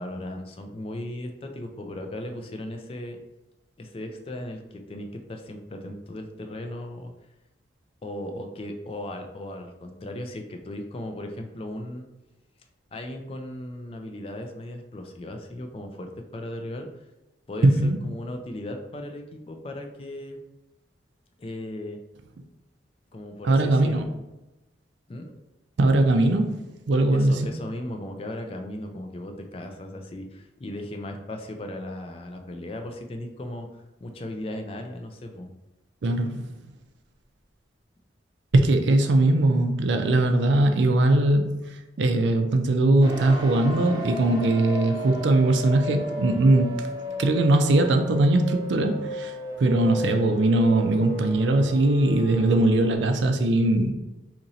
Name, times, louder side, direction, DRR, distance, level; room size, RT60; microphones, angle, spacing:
voice 1, 0.0-3.2 3.8-7.1 8.0-12.1 12.9-16.9 17.5-20.4 21.4-22.0 23.1-24.1 25.1-25.3 27.1-35.5 39.0-39.1 50.2-50.4, left 1 dB, 30° left, 4 dB, 0.3 m, -37 dB
voice 2, 17.6-18.0 23.4-24.0 25.8-27.5 36.0-36.5 38.5-46.7 47.2-53.9, right 2 dB, 75° right, 6 dB, 0.4 m, -21 dB
sound 1, 43.0-53.0, right 1 dB, 20° right, 0.6 m, -34 dB
2.9 x 2.6 x 4.0 m, 1.0 s
head